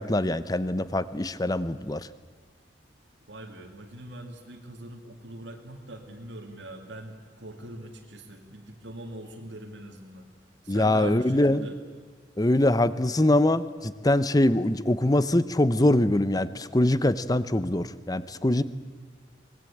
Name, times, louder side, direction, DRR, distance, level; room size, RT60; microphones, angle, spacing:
voice 1, 0.0-2.1 10.7-11.6 12.4-18.6, left 1 dB, 20° left, 15 dB, 0.8 m, -23 dB
voice 2, 3.3-10.3 10.6-11.8, right 1 dB, 65° right, 2 dB, 2.3 m, -42 dB
24.5 x 20.0 x 8.7 m, 1.5 s
head